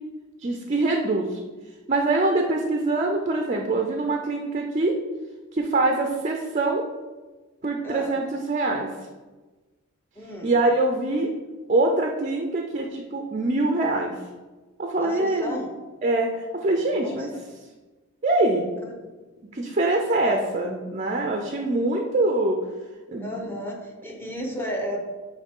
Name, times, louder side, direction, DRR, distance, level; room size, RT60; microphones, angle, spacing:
voice 1, 0.4-1.4 1.9-4.9 5.5-6.8 7.6-8.9 10.4-11.3 11.7-14.1 14.8-15.6 16.0-17.3 18.2-18.7 19.5-22.6 23.1-23.3, right 2 dB, 35° right, 2 dB, 0.5 m, -24 dB
voice 2, 7.8-8.2 10.2-10.6 15.0-15.7 17.0-17.4 18.8-18.9 20.2-20.5 23.2-25.0, equal, 10° left, 0 dB, 0.9 m, -33 dB
9.2 x 3.1 x 3.7 m, 1.2 s
head